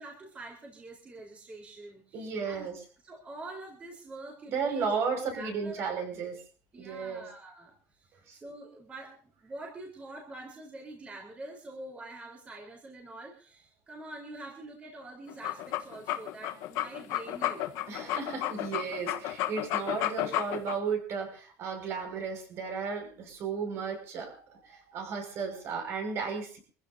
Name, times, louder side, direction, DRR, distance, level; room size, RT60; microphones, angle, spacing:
voice 1, 0.0-2.7 3.0-4.8 5.3-6.0 6.7-17.6, right 2 dB, 20° right, -1 dB, 4.2 m, -46 dB
voice 2, 2.1-2.8 4.5-6.4 6.8-7.3 8.3-8.4 17.9-26.6, right 5 dB, 45° right, 4 dB, 5.9 m, -34 dB
sound 1, 15.3-20.8, left 14 dB, 65° left, 1.2 m, -32 dB
25.5 x 15.5 x 2.8 m, 0.39 s
cardioid pair, 160°, 6 cm